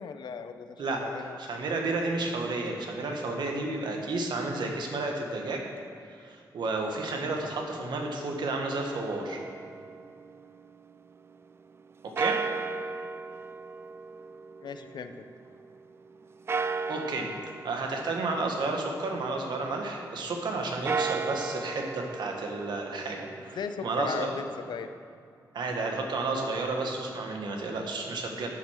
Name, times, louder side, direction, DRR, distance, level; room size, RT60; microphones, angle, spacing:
voice 1, 0.0-1.4 14.6-15.3 23.6-24.9, left 6 dB, 75° left, 9 dB, 0.7 m, -37 dB
voice 2, 0.8-5.7 6.1-9.4 12.0-12.4 16.9-17.3 17.6-24.3 25.5-28.5, right 3 dB, 80° right, 2 dB, 1.5 m, -32 dB
sound 1, 8.9-11.0 12.2-15.5 16.5-19.4 20.7-24.7, right 4 dB, 35° right, 0.4 m, -36 dB
9.5 x 7.5 x 6.4 m, 2.4 s
wide cardioid pair, 135°, 8 cm